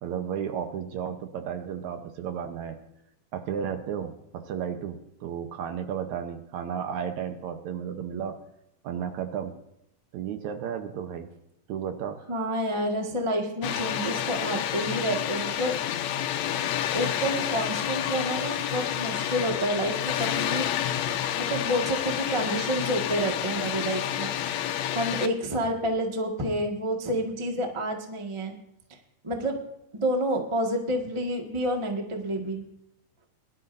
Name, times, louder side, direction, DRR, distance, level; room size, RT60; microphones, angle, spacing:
voice 1, 0.0-2.8 3.3-8.4 8.8-9.6 10.1-11.3 11.7-12.2, right 8 dB, 70° right, 7 dB, 2.1 m, -33 dB
voice 2, 12.3-16.2 16.9-20.7 21.3-24.3 24.9-28.5 29.2-29.6 29.9-32.6, equal, 30° right, 2 dB, 0.5 m, -29 dB
Water, 13.6-25.3, left 10 dB, 75° left, 1.7 m, -29 dB
21.0 x 12.0 x 2.6 m, 0.83 s
omnidirectional pair, 3.9 m